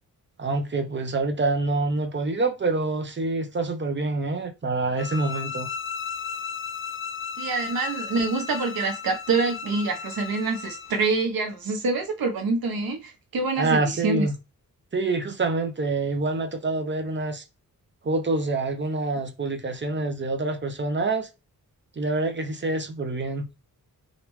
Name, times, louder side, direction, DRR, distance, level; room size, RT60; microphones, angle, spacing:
voice 1, 0.4-5.7 13.6-14.3 14.9-17.4 18.0-21.3 22.0-23.5, right 3 dB, 30° right, 0.7 m, -26 dB
sound 1, 5.0-11.1, left 6 dB, 40° left, 0.4 m, -35 dB
voice 2, 7.4-14.3, right 3 dB, 85° right, 1.0 m, -26 dB
3.3 x 2.5 x 3.1 m
wide cardioid pair, 95°, 35 cm